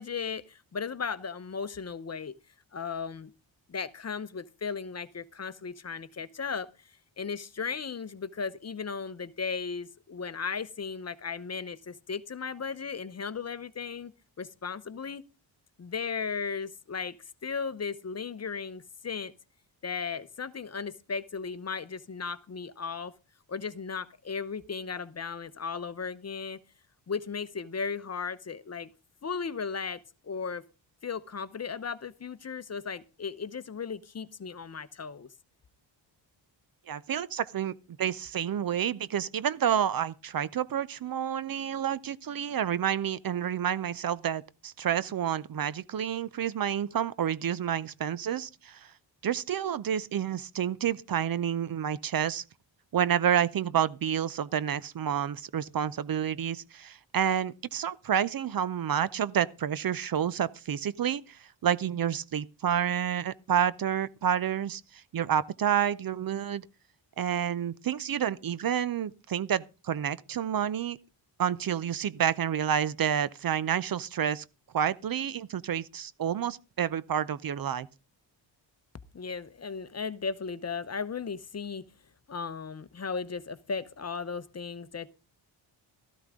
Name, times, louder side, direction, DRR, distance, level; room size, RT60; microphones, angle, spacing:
voice 1, 0.0-2.4 2.7-3.3 3.7-6.9 7.2-14.1 14.4-15.2 15.8-17.2 17.4-19.3 19.8-23.1 23.5-26.6 27.1-28.9 29.2-30.6 31.0-35.3 79.1-81.8 82.3-85.1, left 5 dB, 35° left, 0.8 m, -36 dB
voice 2, 36.9-48.9 49.2-52.4 52.9-66.7 67.2-71.0 71.4-74.4 74.7-77.9, right 9 dB, 50° right, 0.6 m, -29 dB
13.5 x 12.5 x 3.6 m
cardioid pair, 80°, 46 cm